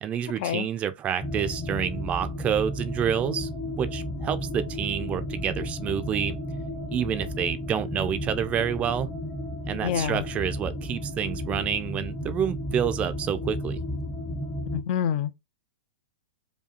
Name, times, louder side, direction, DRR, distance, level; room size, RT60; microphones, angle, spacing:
voice 1, 0.0-3.5 3.8-6.4 6.9-9.1 9.7-13.8, right 9 dB, 25° right, 0.4 m, -28 dB
sound 1, 1.2-14.8, left 1 dB, 15° left, 0.7 m, -33 dB
voice 2, 9.8-10.2 14.7-15.3, left 9 dB, 55° left, 0.4 m, -27 dB
5.0 x 2.3 x 2.8 m
hypercardioid pair, 135°, 6 cm